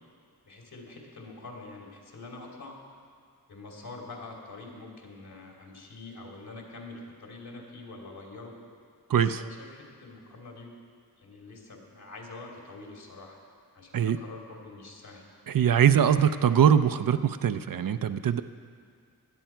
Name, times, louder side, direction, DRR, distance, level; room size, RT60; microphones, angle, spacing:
voice 1, 0.4-2.8 3.5-8.5 9.1-10.7 11.2-13.4 13.7-15.2 16.2-16.4, left 3 dB, 70° left, -1 dB, 2.9 m, -45 dB
voice 2, 9.1-9.4 13.9-14.2 15.5-18.4, right 8 dB, 60° right, 11 dB, 0.6 m, -22 dB
16.5 x 11.5 x 4.6 m, 2.1 s
cardioid pair, 55°, 38 cm